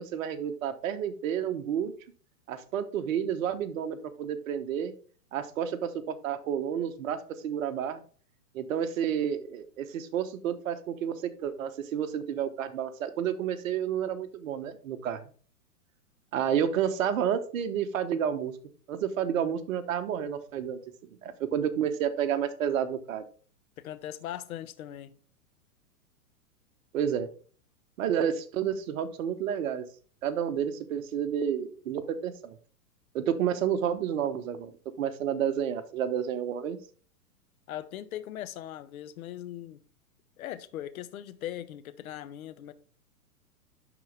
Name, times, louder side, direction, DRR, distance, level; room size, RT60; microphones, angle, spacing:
voice 1, 0.0-1.9 2.5-4.9 5.3-7.2 7.4-8.0 8.5-15.2 16.3-18.5 18.9-20.8 21.2-23.2 26.9-27.3 28.0-29.8 30.2-32.6 33.1-34.7 35.0-36.8, right 9 dB, 60° right, 1.1 m, -30 dB
voice 2, 23.8-25.2 37.7-39.8 40.4-42.7, left 12 dB, 65° left, 0.9 m, -39 dB
11.0 x 4.0 x 3.4 m
hypercardioid pair, 125°, 45 cm